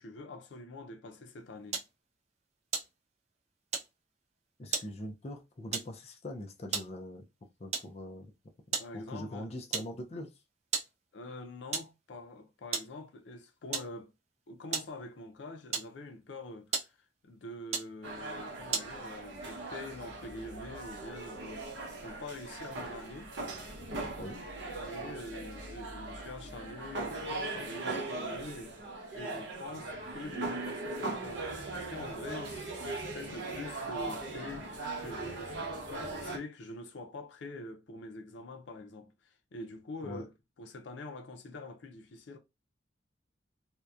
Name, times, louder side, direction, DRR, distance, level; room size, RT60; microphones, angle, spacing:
voice 1, 0.0-1.8 8.8-9.5 11.1-14.1 14.5-17.0 17.2-23.3 24.7-28.8 29.1-40.3 40.6-42.4, left 2 dB, 85° left, 0.5 m, -45 dB
sound 1, 1.7-2.0 2.6-3.4 3.7-4.0 4.7-5.0 5.7-6.0 6.5-7.0 7.7-8.0 8.7-9.0 9.3-9.4 9.7-10.0 10.7-11.0 11.7-12.0 12.7-13.0 13.7-14.0 14.7-15.0 15.7-16.2 16.7-17.0 17.7-18.0 18.7-19.0, right 5 dB, 35° right, 0.4 m, -35 dB
voice 2, 4.6-7.3 7.6-8.3 8.9-10.3 24.2-24.5 40.0-40.2, left 1 dB, 35° left, 0.4 m, -42 dB
sound 2, 18.0-36.4, right 2 dB, 85° right, 0.8 m, -39 dB
2.7 x 2.1 x 2.3 m
head